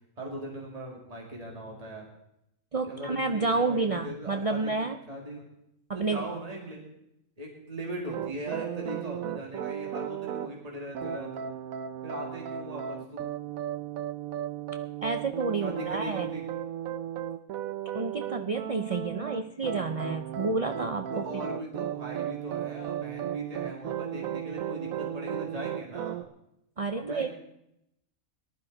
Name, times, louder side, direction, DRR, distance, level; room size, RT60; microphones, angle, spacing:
voice 1, 0.2-2.1 2.8-5.4 5.9-6.9 7.4-11.5 12.0-13.2 15.6-16.4 21.1-26.2 26.9-27.3, right 1 dB, 25° right, -1 dB, 2.3 m, -39 dB
voice 2, 2.7-5.0 5.9-6.3 15.0-16.3 17.9-21.2 26.8-27.3, right 3 dB, 55° right, 7 dB, 0.3 m, -30 dB
sound 1, 8.1-10.5 10.9-26.2, right 10 dB, 85° right, 1.1 m, -35 dB
19.0 x 12.0 x 3.9 m, 0.80 s
omnidirectional pair, 1.4 m